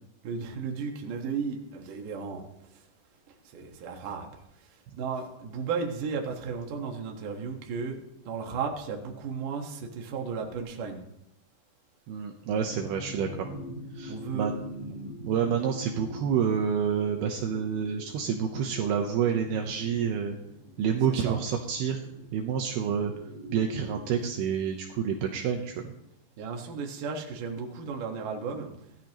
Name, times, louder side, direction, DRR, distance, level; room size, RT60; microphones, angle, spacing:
voice 1, 0.2-2.5 3.5-4.3 5.0-8.0 8.3-11.0 14.1-14.5 21.2-21.4 26.4-28.7, right 5 dB, 60° right, 2 dB, 2.8 m, -34 dB
voice 2, 12.1-13.5 13.9-20.4 20.8-22.0 22.3-23.1 23.5-25.9, right 7 dB, 75° right, 2 dB, 2.8 m, -28 dB
sound 1, 12.5-24.3, left 1 dB, 30° left, 3.4 m, -44 dB
18.0 x 13.0 x 3.1 m, 0.82 s
omnidirectional pair, 4.8 m